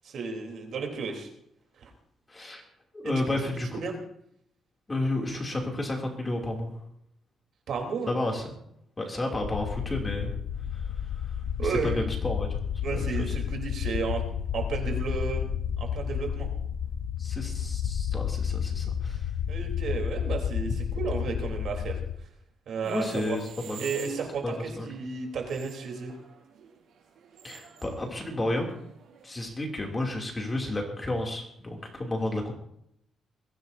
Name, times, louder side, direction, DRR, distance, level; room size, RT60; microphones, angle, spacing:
voice 1, 0.0-1.3 1.8-1.9 3.0-3.2 3.7-3.9 7.7-8.1 11.6-12.0 12.8-14.2 14.5-15.5 15.8-16.5 19.5-22.0 22.7-23.4 23.8-26.1, right 5 dB, 60° right, 2 dB, 3.5 m, -33 dB
voice 2, 2.3-2.6 2.9-3.8 4.9-6.7 8.1-8.5 9.0-10.3 10.7-10.8 11.6-12.6 12.9-13.3 17.2-19.2 22.8-23.8 24.4-24.9 27.4-28.7 29.2-32.5, left 1 dB, 20° left, 1 dB, 2.7 m, -31 dB
sound 1, 9.4-22.2, left 8 dB, 80° left, 0.8 m, -31 dB
sound 2, 22.8-29.2, right 8 dB, 85° right, 5.0 m, -49 dB
22.0 x 15.5 x 2.7 m, 0.73 s
cardioid pair, 145°, 0 cm